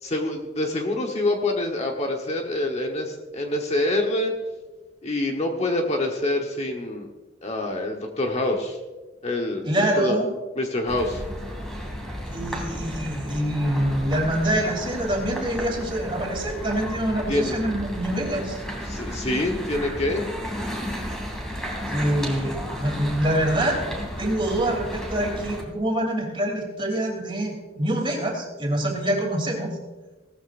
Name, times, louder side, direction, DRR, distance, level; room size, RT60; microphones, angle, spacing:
voice 1, 0.0-4.3 5.0-7.1 7.4-8.8 9.2-9.7 10.0-10.2 10.6-11.2 17.3-17.6 18.8-20.3, left 1 dB, 35° left, 2 dB, 1.2 m, -26 dB
voice 2, 9.6-10.3 12.2-18.6 21.9-29.7, right 1 dB, 25° right, 0 dB, 3.1 m, -25 dB
sound 1, 10.9-25.6, equal, 5° left, 2.5 m, -33 dB
18.0 x 14.0 x 2.6 m, 1.2 s
head